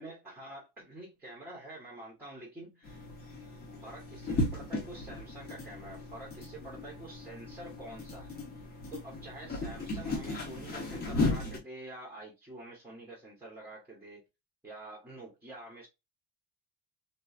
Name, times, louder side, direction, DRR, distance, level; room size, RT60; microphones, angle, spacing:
voice 1, 0.0-3.0 3.8-8.4 8.9-14.2 14.6-15.9, right 1 dB, 5° right, 0.9 m, -47 dB
sound 1, 2.8-11.6, left 2 dB, 25° left, 0.9 m, -36 dB
3.0 x 2.4 x 2.3 m
cardioid pair, 165°, 41 cm